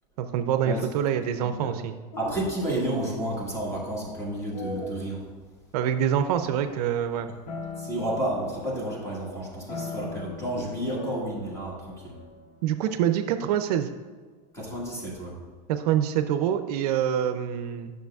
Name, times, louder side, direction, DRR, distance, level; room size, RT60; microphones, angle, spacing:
voice 1, 0.2-1.9 5.7-7.3 12.6-13.9 15.7-17.9, right 9 dB, 65° right, 9 dB, 0.5 m, -25 dB
voice 2, 1.4-1.7 2.2-5.3 7.8-12.2 14.5-15.4, right 1 dB, 15° left, -3 dB, 1.5 m, -31 dB
sound 1, 2.1-8.6, left 1 dB, 85° left, 1.7 m, -44 dB
sound 2, 6.2-9.2 9.7-13.6, left 4 dB, 70° left, 1.2 m, -41 dB
9.2 x 6.4 x 2.3 m, 1.4 s
supercardioid pair, 155°, 21 cm